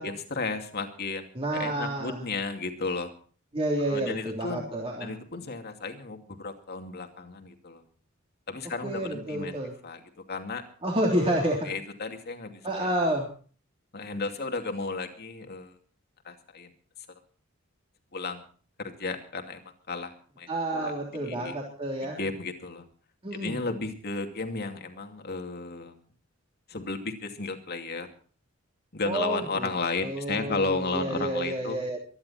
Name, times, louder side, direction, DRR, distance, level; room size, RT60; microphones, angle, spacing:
voice 1, 0.0-1.3 1.5-3.1 3.9-4.6 5.0-7.8 8.5-9.5 9.8-10.0 10.3-10.6 11.1-12.9 13.9-15.8 16.2-16.7 18.1-18.4 18.8-21.6 22.0-22.9 23.3-26.1 26.7-28.1 28.9-31.8, left 3 dB, 50° left, 5 dB, 2.6 m, -34 dB
voice 2, 1.3-2.2 3.5-5.1 8.8-9.7 10.8-11.6 12.6-13.3 20.5-22.2 23.2-23.6 29.0-29.7 30.0-32.0, right 1 dB, 30° right, -2 dB, 3.4 m, -29 dB
24.0 x 11.0 x 4.3 m, 0.42 s
head